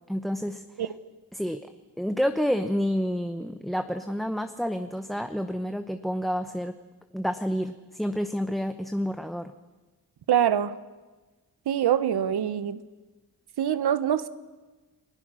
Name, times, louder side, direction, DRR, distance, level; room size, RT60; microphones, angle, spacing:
voice 1, 0.1-0.6 1.3-1.6 2.0-6.7 7.1-9.5, equal, ahead, 8 dB, 0.8 m, -29 dB
voice 2, 10.3-10.7 11.7-12.8 13.6-14.3, right 10 dB, 75° right, 13 dB, 1.2 m, -24 dB
30.0 x 20.5 x 6.4 m, 1.2 s
wide cardioid pair, 140°, 39 cm